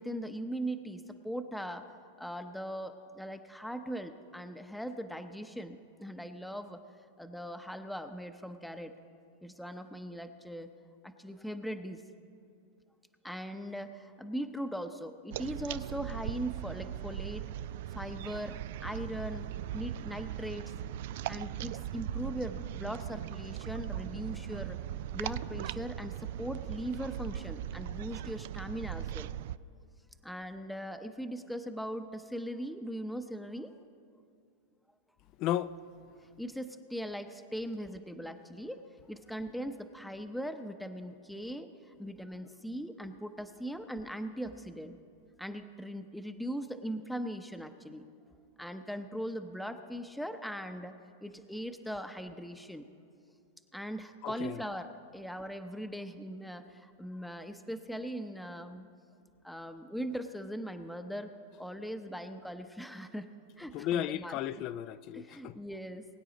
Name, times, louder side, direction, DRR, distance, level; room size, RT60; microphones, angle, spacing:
voice 1, 0.0-1.9 2.2-6.8 7.2-8.9 9.4-10.7 11.0-12.0 13.2-17.5 17.9-20.7 21.3-24.8 25.1-29.3 30.2-33.7 36.4-38.8 39.1-41.7 42.0-45.0 45.4-48.1 48.6-52.8 53.7-58.9 59.4-61.3 61.6-63.3 63.6-64.4 65.1-66.0, equal, ahead, 0.7 m, -40 dB
sound 1, 15.3-29.6, right 11 dB, 60° right, 0.3 m, -39 dB
voice 2, 35.4-35.7 54.2-54.6 63.7-65.5, left 11 dB, 45° left, 0.4 m, -34 dB
22.0 x 9.1 x 4.0 m
hypercardioid pair, 100°, 0 cm